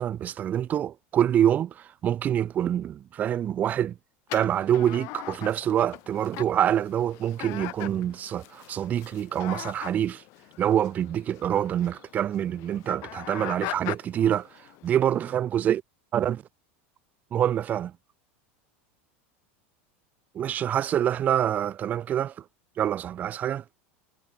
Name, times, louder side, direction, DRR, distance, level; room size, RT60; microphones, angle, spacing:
voice 1, 0.0-3.9 4.3-10.2 10.6-14.5 14.8-15.8 16.1-16.4 17.3-17.9 20.3-22.3 22.8-23.6, right 10 dB, 25° right, 0.7 m, -26 dB
sound 1, 4.3-15.3, left 25 dB, 45° left, 4.9 m, -41 dB
supercardioid pair, 165°, 7 cm